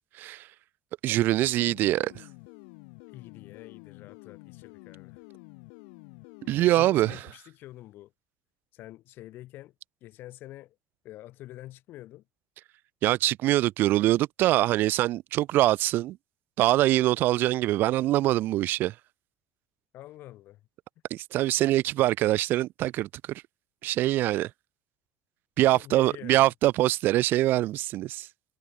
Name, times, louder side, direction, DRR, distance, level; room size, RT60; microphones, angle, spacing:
voice 1, 0.2-0.5 1.0-2.3 6.5-7.2 13.0-16.2 16.6-18.9 21.1-23.4 23.8-24.5 25.6-28.3, right 15 dB, 55° right, 0.3 m, -24 dB
sound 1, 1.5-7.1, left 40 dB or more, 80° left, 2.2 m, -49 dB
voice 2, 3.1-5.2 6.7-8.1 8.7-9.7 10.0-10.8 11.0-12.2 19.9-20.6 25.7-26.5, left 15 dB, 60° left, 1.5 m, -46 dB
supercardioid pair, 105°, 4 cm